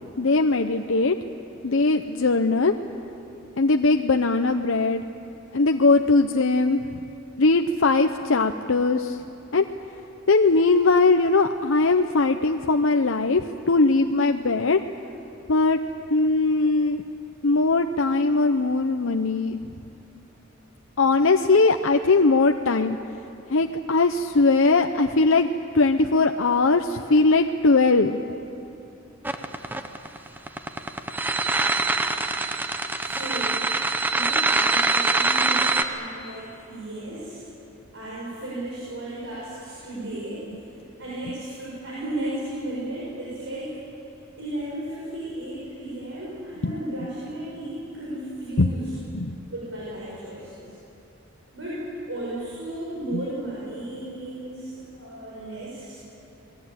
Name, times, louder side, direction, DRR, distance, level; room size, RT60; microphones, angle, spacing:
voice 1, 0.2-1.1 1.6-2.7 3.6-5.0 5.5-7.0 7.4-9.2 9.5-9.6 10.3-14.8 15.5-15.8 16.1-17.0 17.4-19.6 21.0-23.0 23.5-25.5 25.7-28.2 46.6-46.7 48.6-48.7 49.1-49.3 53.1-53.2, left 3 dB, 70° left, 5 dB, 0.8 m, -20 dB
sound 1, 29.2-35.8, right 3 dB, 10° right, 1.1 m, -23 dB
voice 2, 32.9-33.7 34.1-37.4 37.9-40.5 41.0-43.8 44.4-48.9 49.5-50.7 51.5-56.0, right 1 dB, 65° right, -7 dB, 6.7 m, -34 dB
27.0 x 19.5 x 8.9 m, 3.0 s
head